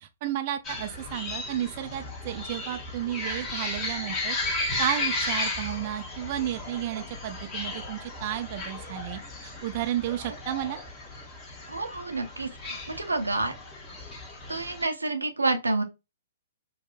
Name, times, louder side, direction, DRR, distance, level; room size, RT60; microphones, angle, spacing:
voice 1, 0.0-4.4 4.8-10.8, right 12 dB, 45° right, 0.3 m, -32 dB
sound 1, 0.6-14.9, left 2 dB, 25° left, 1.1 m, -35 dB
voice 2, 11.7-13.5 14.5-15.8, right 2 dB, 90° right, 0.6 m, -29 dB
4.6 x 2.1 x 2.5 m
figure-of-eight pair, 120°, 0 cm